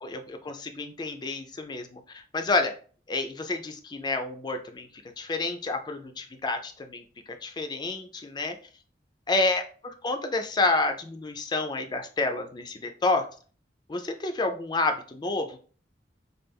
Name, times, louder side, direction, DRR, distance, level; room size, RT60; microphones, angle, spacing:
voice 1, 0.0-2.7 3.1-4.9 5.2-7.0 7.3-8.6 9.3-13.3 13.9-15.6, left 3 dB, 25° left, 6 dB, 0.4 m, -29 dB
3.2 x 2.3 x 3.4 m, 0.41 s
head